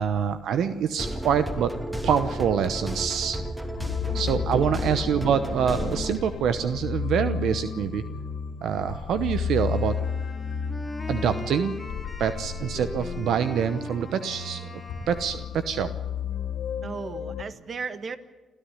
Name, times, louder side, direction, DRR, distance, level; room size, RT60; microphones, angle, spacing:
voice 1, 0.0-1.7 2.0-3.4 4.1-8.0 8.6-10.0 11.1-11.7 12.2-14.6 15.1-15.9, right 8 dB, 75° right, 10 dB, 0.9 m, -25 dB
sound 1, 1.0-6.2, right 1 dB, 10° right, 2.5 m, -33 dB
sound 2, 3.7-17.4, left 6 dB, 80° left, 2.8 m, -33 dB
voice 2, 4.1-4.4 4.8-5.0 16.8-18.2, right 5 dB, 45° right, 11 dB, 1.5 m, -36 dB
Wind instrument woodwind instrument, 9.5-15.7, left 1 dB, 5° left, 3.3 m, -41 dB
28.0 x 13.5 x 10.0 m, 1.2 s
cardioid pair, 90°, 0 cm